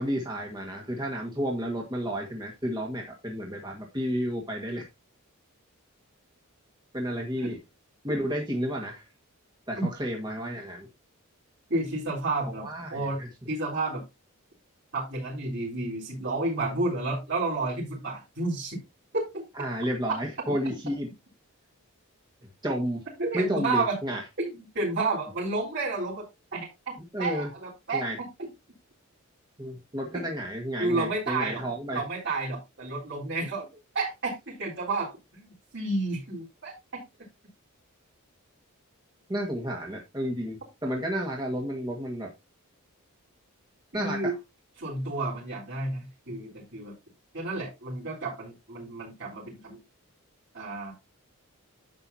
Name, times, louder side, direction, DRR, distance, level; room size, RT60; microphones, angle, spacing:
voice 1, 0.0-4.8 6.9-7.6 8.0-9.0 9.7-10.9 12.6-13.3 19.5-21.1 22.6-23.0 23.3-24.2 27.1-27.5 27.9-28.2 29.6-32.0 39.3-42.3 43.9-44.3, equal, 20° right, 1.7 m, -31 dB
voice 2, 11.7-14.0 14.9-18.8 19.1-19.4 23.2-24.0 24.4-28.5 30.1-30.2 30.8-31.6 31.9-33.7 33.9-35.5 35.7-37.0 43.9-44.3 44.8-47.0 47.3-49.8 50.5-50.9, right 2 dB, 50° right, 4.0 m, -31 dB
10.5 x 7.9 x 2.8 m
head